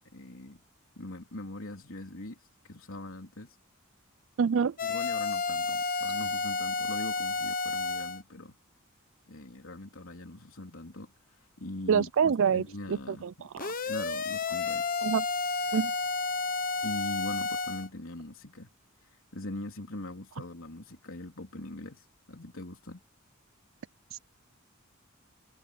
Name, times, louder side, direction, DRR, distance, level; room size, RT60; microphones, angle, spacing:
voice 1, 0.1-0.6 1.0-3.6 4.8-8.6 9.3-11.1 11.4-13.3 13.9-15.0 16.8-18.7 19.0-23.0, left 1 dB, 70° left, 3.7 m, -42 dB
voice 2, 4.4-4.8 11.9-13.7 15.0-15.2 15.7-15.9 24.1-24.2, right 6 dB, 65° right, 0.4 m, -27 dB
sound 1, 4.8-8.2 13.6-17.9, left 4 dB, 40° left, 1.1 m, -31 dB
head